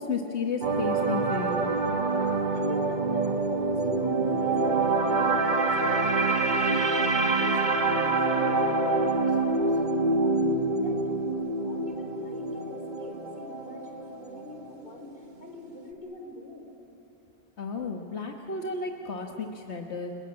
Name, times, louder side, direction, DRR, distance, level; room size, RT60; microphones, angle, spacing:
voice 1, 0.0-1.7 17.6-20.1, left 4 dB, 85° left, 2 dB, 1.7 m, -33 dB
sound 1, 0.6-14.8 15.1-15.3, right 3 dB, 45° right, 1.4 m, -26 dB
voice 2, 2.2-10.4 10.8-11.0 11.5-16.7, left 1 dB, 55° left, 3 dB, 4.1 m, -45 dB
30.0 x 22.0 x 8.7 m, 2.9 s
omnidirectional pair, 1.1 m